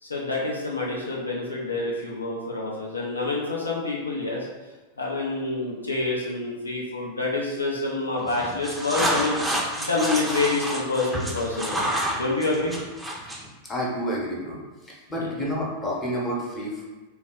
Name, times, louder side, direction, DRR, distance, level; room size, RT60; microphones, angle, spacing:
voice 1, 0.0-4.5 5.0-9.4 9.7-11.9 12.1-12.8 15.1-15.3, left 3 dB, 75° left, -3 dB, 0.8 m, -27 dB
sound 1, 8.2-13.5, right 1 dB, 5° right, 0.6 m, -29 dB
voice 2, 13.6-16.8, equal, 20° left, -3 dB, 1.1 m, -30 dB
3.9 x 2.4 x 3.7 m, 1.2 s
figure-of-eight pair, 90°, 0 cm